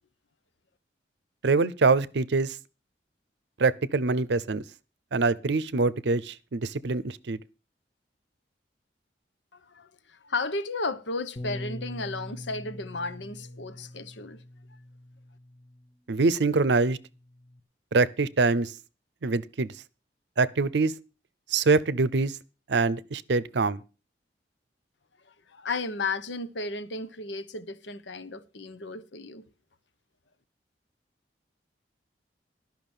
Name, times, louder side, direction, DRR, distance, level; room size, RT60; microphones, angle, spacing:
voice 1, 1.4-2.5 3.6-4.6 5.1-7.4 16.1-17.0 17.9-18.7 19.2-19.7 20.4-20.9 21.5-22.3 22.7-23.8, right 3 dB, 70° right, 0.6 m, -24 dB
voice 2, 9.5-14.4 25.5-29.4, left 3 dB, 80° left, 1.0 m, -34 dB
Bass guitar, 11.4-15.9 16.6-17.6, left 1 dB, 30° left, 0.8 m, -42 dB
12.5 x 5.9 x 7.2 m
head